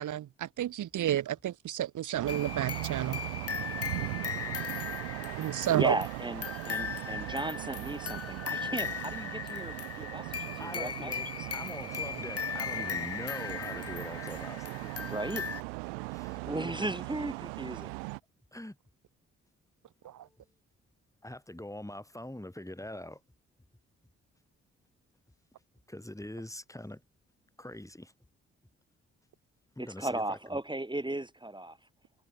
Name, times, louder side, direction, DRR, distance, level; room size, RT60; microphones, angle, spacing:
voice 1, 0.0-3.2 5.4-6.0 20.0-20.1, right 12 dB, 70° right, 2.2 m, -31 dB
sound 1, 2.1-18.2, right 33 dB, 85° right, 2.2 m, -39 dB
sound 2, 2.3-15.6, left 7 dB, 45° left, 1.5 m, -38 dB
voice 2, 5.7-11.1 11.4-11.5 14.8-15.5 16.5-18.0 29.8-31.8, right 1 dB, 15° right, 6.4 m, -36 dB
voice 3, 10.6-15.1 16.1-17.0 18.5-18.8 20.0-20.4 21.2-23.2 25.9-27.0 27.6-28.1 29.8-30.6, left 1 dB, 10° left, 7.0 m, -44 dB
hypercardioid pair, 40°, 32 cm